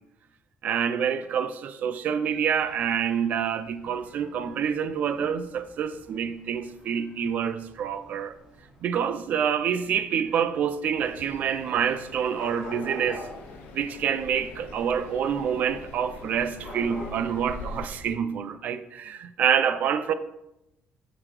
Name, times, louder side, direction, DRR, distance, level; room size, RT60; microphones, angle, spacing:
voice 1, 0.6-8.4 8.8-13.2 13.7-20.1, right 8 dB, 45° right, 0.5 m, -27 dB
Dog / Cat, 2.2-18.1, equal, 10° right, 2.8 m, -47 dB
sound 1, 11.0-17.9, left 3 dB, 70° left, 1.2 m, -43 dB
11.0 x 3.9 x 4.9 m
cardioid pair, 175°, 4 cm